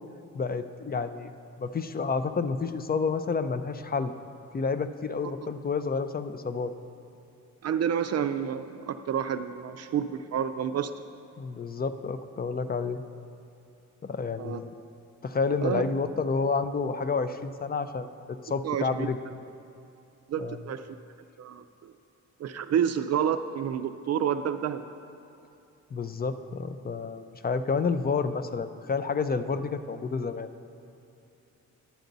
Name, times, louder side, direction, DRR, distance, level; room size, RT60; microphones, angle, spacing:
voice 1, 0.3-1.3 1.6-4.1 4.5-6.7 11.4-13.0 14.0-14.7 15.2-19.2 20.4-20.6 25.9-30.5, left 4 dB, 30° left, 10 dB, 0.4 m, -30 dB
voice 2, 7.6-10.9 14.4-14.6 15.6-15.8 18.6-19.1 20.3-20.9 21.4-21.9 22.4-24.8, right 8 dB, 60° right, 9 dB, 0.4 m, -29 dB
11.5 x 8.0 x 3.9 m, 2.8 s
cardioid pair, 90°, 30 cm